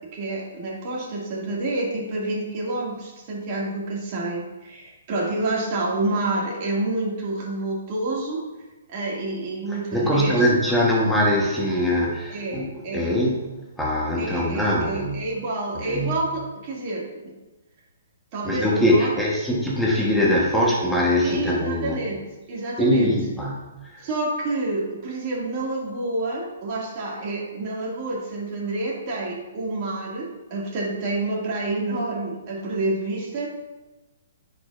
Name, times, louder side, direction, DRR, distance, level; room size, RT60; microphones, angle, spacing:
voice 1, 0.1-8.4 8.9-10.5 12.3-13.1 14.2-17.3 18.3-19.1 21.2-22.2 22.5-23.2 24.0-33.5, right 2 dB, 35° right, -3 dB, 2.1 m, -28 dB
voice 2, 9.7-13.5 13.8-15.3 15.7-16.3 18.4-22.0 22.8-24.1, left 1 dB, ahead, -4 dB, 1.2 m, -22 dB
9.9 x 5.1 x 2.5 m, 1.1 s
hypercardioid pair, 150°, 0 cm